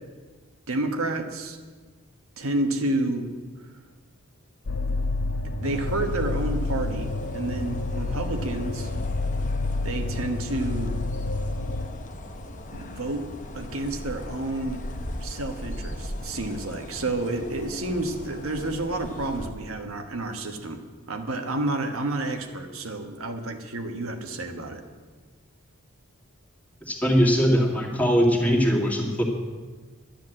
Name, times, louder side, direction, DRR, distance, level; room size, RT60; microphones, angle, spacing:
voice 1, 0.7-1.6 2.4-3.3 3.6-3.8 5.4-8.9 9.8-10.9 12.7-13.3 13.5-14.8 15.2-20.8 21.1-24.8, right 2 dB, 80° right, 4 dB, 1.4 m, -30 dB
sound 1, 4.7-11.9, left 3 dB, 60° left, 0.7 m, -29 dB
sound 2, 5.6-19.5, left 1 dB, 35° left, 0.9 m, -39 dB
voice 2, 26.8-29.2, equal, 5° left, -2 dB, 2.1 m, -21 dB
12.0 x 10.5 x 7.7 m, 1.4 s
head